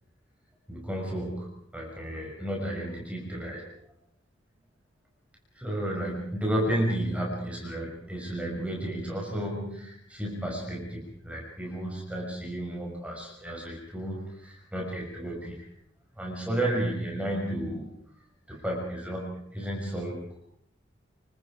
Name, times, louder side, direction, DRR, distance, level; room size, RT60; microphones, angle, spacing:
voice 1, 0.7-3.7 5.5-15.7 16.2-18.0 18.5-20.4, right 1 dB, 5° right, -2 dB, 5.9 m, -32 dB
27.5 x 25.0 x 4.9 m, 0.70 s
head